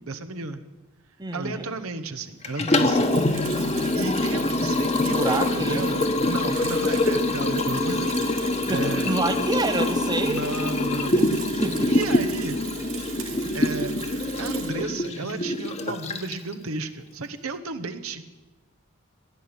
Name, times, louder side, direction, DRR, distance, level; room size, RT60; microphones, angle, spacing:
voice 1, 0.0-0.6 1.3-3.1 3.5-3.6 3.9-9.1 10.2-11.3 11.5-11.6 11.9-12.6 13.2-13.9 14.4-18.2, right 3 dB, 90° right, 8 dB, 1.1 m, -33 dB
voice 2, 1.2-1.7 5.1-5.8 8.6-10.4 11.1-11.3 11.6-12.0, right 2 dB, 20° right, 7 dB, 1.1 m, -28 dB
Liquid, 2.4-16.5, left 2 dB, 30° left, 1.1 m, -25 dB
Bicycle / Mechanisms, 2.9-14.7, right 6 dB, 65° right, 2.5 m, -39 dB
15.5 x 10.5 x 8.9 m, 1.1 s
head